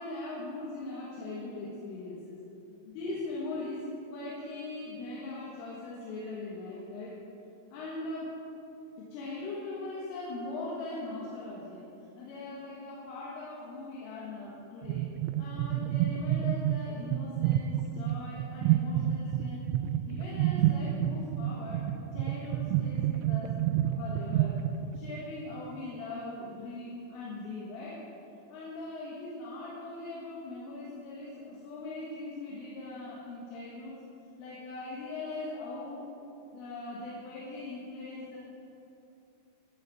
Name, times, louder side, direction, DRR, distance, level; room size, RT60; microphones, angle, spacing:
voice 1, 0.0-2.4 2.8-3.9 4.1-7.1 7.7-8.4 9.0-11.8 12.2-15.1 15.4-19.6 20.1-21.9 22.1-23.6 24.0-24.6 24.9-28.0 28.5-34.0 34.4-36.1 36.5-38.4, left 2 dB, 85° left, -6 dB, 4.2 m, -40 dB
sound 1, 14.8-25.0, right 12 dB, 85° right, 2.8 m, -29 dB
14.0 x 7.4 x 7.7 m, 2.8 s
omnidirectional pair, 5.6 m